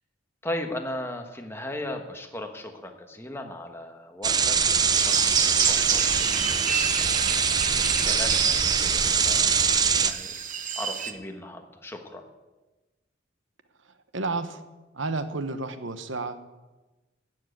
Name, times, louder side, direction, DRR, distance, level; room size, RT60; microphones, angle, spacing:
voice 1, 0.4-7.3 8.0-9.5 10.0-10.3 10.7-12.2, left 1 dB, 10° left, 4 dB, 1.3 m, -37 dB
sound 1, 4.2-10.1, right 6 dB, 20° right, 0.5 m, -23 dB
sound 2, 4.9-11.1, right 7 dB, 40° right, 0.9 m, -28 dB
voice 2, 14.1-14.6 14.9-16.4, right 3 dB, 75° right, 10 dB, 1.0 m, -31 dB
13.5 x 7.6 x 9.2 m, 1.1 s
head